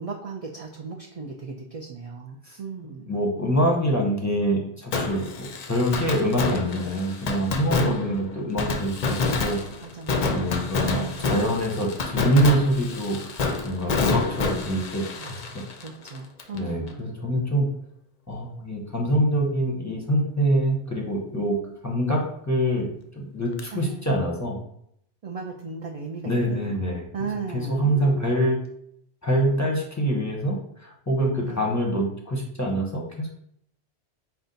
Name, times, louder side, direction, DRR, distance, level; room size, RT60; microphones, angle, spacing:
voice 1, 0.0-3.1 7.8-8.3 9.8-10.5 10.8-11.4 15.2-17.1 23.7-24.1 25.2-26.8 27.1-28.4 31.4-31.7, right 5 dB, 65° right, 0 dB, 0.3 m, -36 dB
voice 2, 3.1-9.6 10.3-15.6 16.5-17.7 18.3-21.6 21.8-22.9 23.1-24.6 26.2-27.3 27.5-28.6 29.2-33.3, equal, 20° left, -1 dB, 0.7 m, -25 dB
Fireworks, 4.9-16.6 16.9-17.0 23.6-23.7, left 3 dB, 55° left, 0.5 m, -28 dB
5.3 x 2.3 x 3.8 m, 0.72 s
omnidirectional pair, 1.2 m